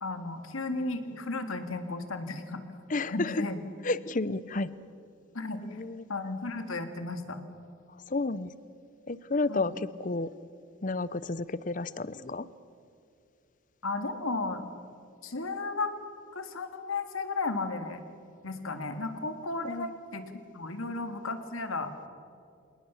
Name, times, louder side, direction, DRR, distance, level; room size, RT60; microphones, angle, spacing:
voice 1, 0.0-2.6 3.1-3.6 5.3-5.8 6.1-7.4 9.5-9.8 13.8-14.6 15.2-15.9 16.3-18.0 18.4-20.2 20.5-21.9, left 3 dB, 80° left, 8 dB, 2.0 m, -34 dB
voice 2, 2.9-3.5 3.8-4.7 5.6-6.1 8.1-8.5 9.1-10.3 10.8-12.5 19.6-19.9, left 3 dB, 40° left, 17 dB, 0.6 m, -31 dB
27.0 x 19.0 x 7.1 m, 2.4 s
head